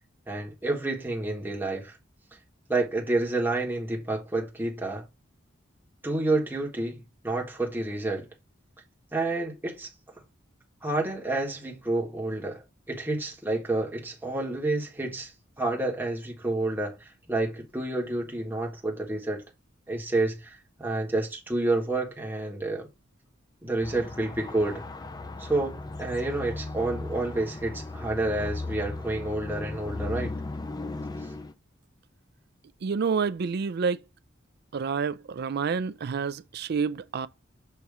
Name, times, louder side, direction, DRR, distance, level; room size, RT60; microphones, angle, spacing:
voice 1, 0.3-2.0 2.7-5.0 6.0-8.3 9.1-9.9 10.8-15.3 15.6-17.0 17.3-19.4 19.9-22.9 23.6-24.8 25.4-30.3, right 2 dB, 10° right, 1.4 m, -29 dB
sound 1, 23.8-31.5, left 2 dB, 20° left, 0.4 m, -37 dB
voice 2, 32.8-34.0 34.7-37.3, right 5 dB, 55° right, 0.4 m, -28 dB
6.9 x 3.0 x 4.8 m
head